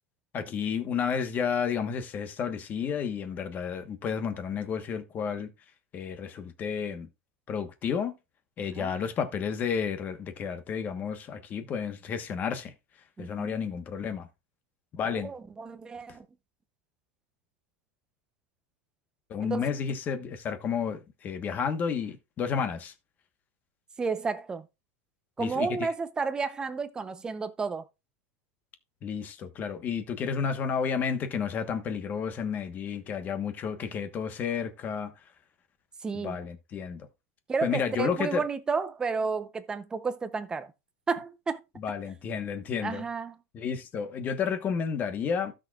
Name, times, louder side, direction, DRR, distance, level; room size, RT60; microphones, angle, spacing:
voice 1, 0.3-5.5 5.9-7.1 7.5-8.1 8.6-12.7 13.2-14.3 14.9-15.3 16.1-16.2 19.3-22.9 25.4-25.9 29.0-35.1 36.1-37.1 37.6-38.5 41.8-43.1 43.5-45.5, left 6 dB, 20° left, 1.1 m, -31 dB
voice 2, 13.2-13.5 15.1-16.2 19.5-19.7 24.0-24.7 25.4-27.8 36.0-36.4 37.5-40.7 41.1-41.6 42.8-43.3, right 4 dB, 10° right, 0.6 m, -31 dB
15.5 x 6.2 x 2.4 m
supercardioid pair, 170°, 8 cm